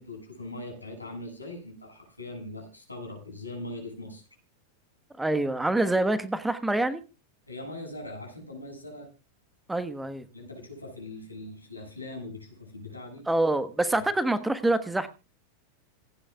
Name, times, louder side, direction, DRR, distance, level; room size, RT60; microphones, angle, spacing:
voice 1, 0.0-4.2 7.5-9.1 10.3-13.2 13.9-14.1, left 2 dB, 85° left, 2 dB, 7.3 m, -41 dB
voice 2, 5.2-7.0 9.7-10.2 13.3-15.1, right 2 dB, 5° right, 12 dB, 1.3 m, -26 dB
26.5 x 10.0 x 2.3 m, 0.31 s
figure-of-eight pair, 90°, 0 cm